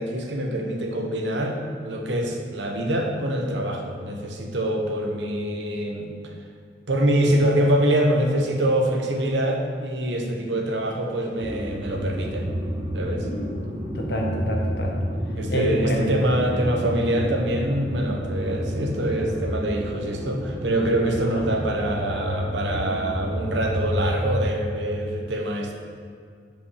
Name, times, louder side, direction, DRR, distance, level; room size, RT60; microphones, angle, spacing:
voice 1, 0.0-6.2 6.9-12.5 12.9-13.3 15.4-25.7, right 1 dB, 85° right, 2 dB, 1.0 m, -25 dB
sound 1, 11.4-24.6, equal, 25° right, 0.9 m, -30 dB
voice 2, 13.2-13.6 13.9-14.9 15.5-16.1 21.2-21.6, equal, 70° left, 0 dB, 1.3 m, -28 dB
5.7 x 5.3 x 6.4 m, 2.2 s
head